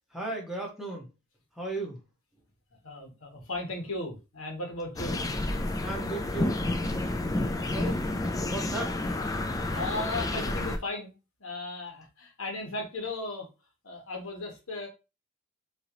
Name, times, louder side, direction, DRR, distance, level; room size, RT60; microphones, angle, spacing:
voice 1, 0.1-1.1 1.5-2.0 5.8-6.6 7.7-8.1 8.5-9.0, right 2 dB, ahead, -3 dB, 1.2 m, -36 dB
voice 2, 2.8-5.2 9.6-11.1 11.4-13.5 13.8-14.9, left 2 dB, 80° left, 1 dB, 1.4 m, -36 dB
sound 1, 5.0-10.8, left 2 dB, 15° left, 0.4 m, -30 dB
3.8 x 2.8 x 3.0 m, 0.28 s
head